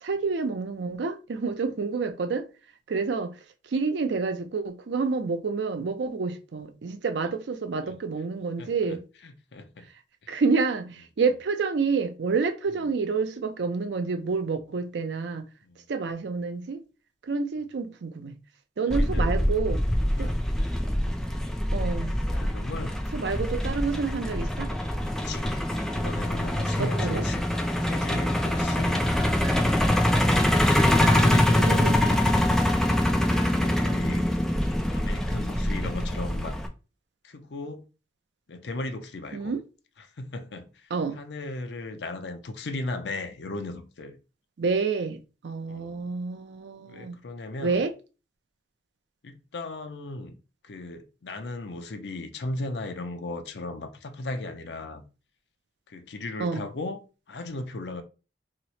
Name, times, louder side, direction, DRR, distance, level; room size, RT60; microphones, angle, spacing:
voice 1, 0.0-2.5 2.9-3.3 3.7-9.0 10.3-15.4 15.9-16.8 17.2-18.3 18.8-19.8 20.2-20.3 21.7-22.1 23.1-24.7 27.0-27.2 31.0-31.3 31.7-32.0 39.3-39.6 40.9-41.2 44.6-47.2 47.6-47.9 56.4-56.7, right 4 dB, 80° right, 0.5 m, -28 dB
voice 2, 8.6-9.0 9.2-9.9 10.2-10.4 12.8-12.9 15.6-15.8 18.9-19.3 20.2-20.5 22.3-23.0 25.0-27.4 27.8-29.8 30.6-32.6 33.2-34.3 34.9-36.6 37.2-37.9 38.5-39.5 40.0-44.2 45.7-46.1 46.9-47.8 49.2-50.4 50.6-55.0 55.9-57.0 57.3-58.0, left 2 dB, 75° left, 0.5 m, -37 dB
Truck, 18.9-36.7, left 1 dB, 5° left, 0.3 m, -24 dB
2.9 x 2.0 x 4.1 m
head